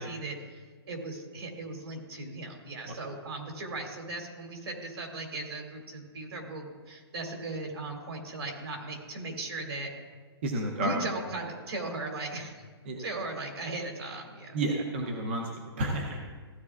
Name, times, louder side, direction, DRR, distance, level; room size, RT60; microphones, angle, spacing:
voice 1, 0.0-9.9 10.8-12.6 13.0-14.6, right 2 dB, 65° right, 2 dB, 2.4 m, -37 dB
voice 2, 10.4-11.0 12.9-13.0 14.5-16.2, right 2 dB, 25° right, 1 dB, 0.7 m, -31 dB
15.5 x 11.0 x 2.4 m, 1.5 s
hypercardioid pair, 180°, 14 cm